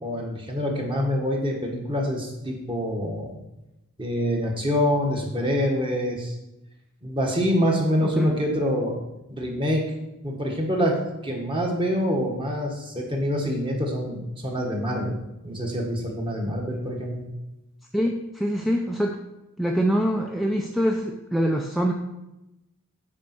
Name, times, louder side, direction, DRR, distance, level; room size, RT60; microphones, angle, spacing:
voice 1, 0.0-3.3 4.0-6.4 7.0-9.0 9.3-9.8 10.2-11.0 11.2-15.2 15.4-17.3, equal, 25° right, 0 dB, 1.6 m, -26 dB
voice 2, 8.0-8.4 17.9-19.2 19.6-21.9, equal, ahead, 1 dB, 0.5 m, -24 dB
8.7 x 5.2 x 6.0 m, 0.94 s
head